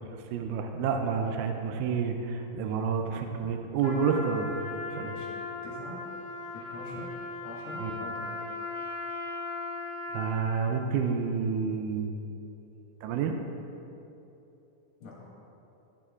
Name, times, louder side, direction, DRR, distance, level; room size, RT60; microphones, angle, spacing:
voice 1, 0.1-4.5 4.9-5.1 7.8-7.9 10.1-12.1 13.0-13.3, right 6 dB, 80° right, 5 dB, 1.9 m, -29 dB
Trumpet, 3.8-10.8, left 3 dB, 75° left, 1.5 m, -38 dB
voice 2, 5.0-5.3 5.6-6.0 6.5-7.2 7.4-8.4 15.0-15.2, left 2 dB, 55° left, -6 dB, 2.7 m, -44 dB
11.5 x 6.6 x 2.4 m, 2.9 s
omnidirectional pair, 3.8 m